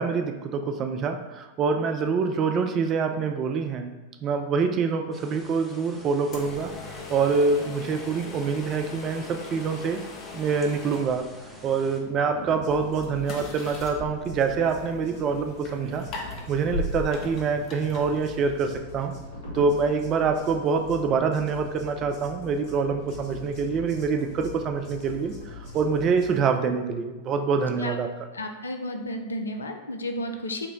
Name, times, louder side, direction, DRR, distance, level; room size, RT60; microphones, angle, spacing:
voice 1, 0.0-3.9 4.2-10.0 10.3-11.2 11.6-16.0 16.5-19.1 19.5-25.3 25.7-28.1, right 5 dB, 30° right, 6 dB, 0.4 m, -25 dB
sound 1, 5.1-12.0, equal, ahead, 0.7 m, -49 dB
sound 2, 6.3-18.8, left 3 dB, 40° left, 0.7 m, -39 dB
sound 3, 12.3-26.4, left 2 dB, 60° left, 1.3 m, -42 dB
voice 2, 28.3-30.7, left 1 dB, 75° left, 5 dB, 0.4 m, -32 dB
4.5 x 2.1 x 3.8 m, 1.1 s
figure-of-eight pair, 90°, 0 cm